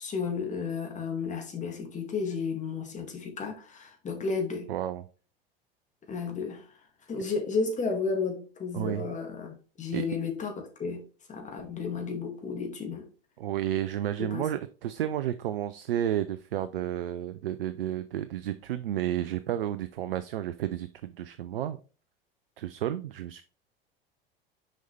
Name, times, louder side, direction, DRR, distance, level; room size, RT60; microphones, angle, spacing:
voice 1, 0.0-4.7 6.1-6.8 7.1-11.0 11.3-13.1 14.2-14.4, left 5 dB, 25° left, 2.1 m, -33 dB
voice 2, 4.7-5.0 8.7-9.1 9.9-10.0 13.4-21.8 22.6-23.4, right 11 dB, 70° right, 0.5 m, -31 dB
6.4 x 5.3 x 3.2 m
figure-of-eight pair, 80°, 29 cm